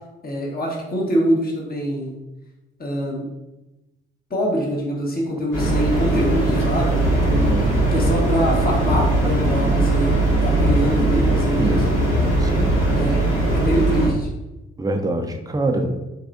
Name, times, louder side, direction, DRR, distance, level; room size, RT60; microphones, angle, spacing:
voice 1, 0.2-2.2 2.8-3.3 4.3-7.5 7.9-10.1 10.4-11.9 13.0-13.2 13.5-14.3, equal, 30° left, -2 dB, 1.3 m, -24 dB
sound 1, 5.5-14.1, right 2 dB, 85° left, 1.5 m, -19 dB
voice 2, 7.3-7.8 11.6-11.9 12.4-12.7 14.8-16.0, right 2 dB, 10° right, 3 dB, 0.7 m, -25 dB
4.7 x 3.2 x 2.6 m, 1.0 s
hypercardioid pair, 40°, 30 cm